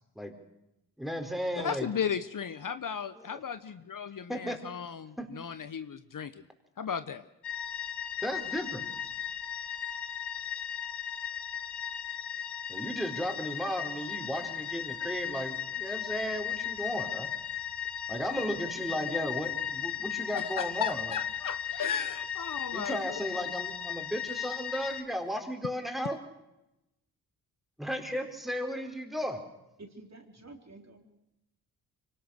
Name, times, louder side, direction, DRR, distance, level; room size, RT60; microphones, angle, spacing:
voice 1, 1.0-1.9 3.2-3.4 4.3-4.6 5.2-5.3 8.2-8.8 12.7-17.3 18.1-21.2 22.7-26.2 27.8-29.4, equal, ahead, 5 dB, 4.5 m, -35 dB
voice 2, 1.6-6.4 6.8-7.2 20.3-23.0, left 7 dB, 50° left, 12 dB, 1.0 m, -35 dB
sound 1, 7.4-25.0, left 9 dB, 65° left, 1.9 m, -36 dB
voice 3, 29.8-31.0, right 2 dB, 40° right, 4 dB, 4.0 m, -50 dB
24.5 x 18.5 x 6.6 m, 0.91 s
supercardioid pair, 40°, 42 cm